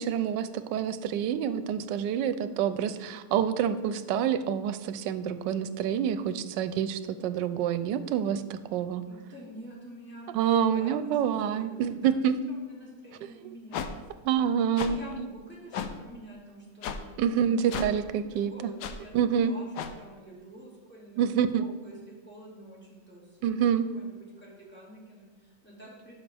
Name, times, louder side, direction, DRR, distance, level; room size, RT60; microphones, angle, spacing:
voice 1, 0.0-9.0 10.3-12.3 14.2-15.3 17.2-18.5 19.1-19.5 21.2-21.7 23.4-23.9, right 8 dB, 85° right, 12 dB, 1.2 m, -27 dB
voice 2, 9.0-10.3 10.6-14.2 14.8-18.0 18.3-26.1, equal, 5° left, -4 dB, 2.4 m, -48 dB
sound 1, 13.7-13.9 14.8-14.9 15.7-15.9 16.8-17.0 17.7-17.9 18.8-18.9 19.7-19.9, left 7 dB, 75° left, 1.1 m, -33 dB
12.0 x 5.8 x 3.4 m, 1.3 s
omnidirectional pair, 1.9 m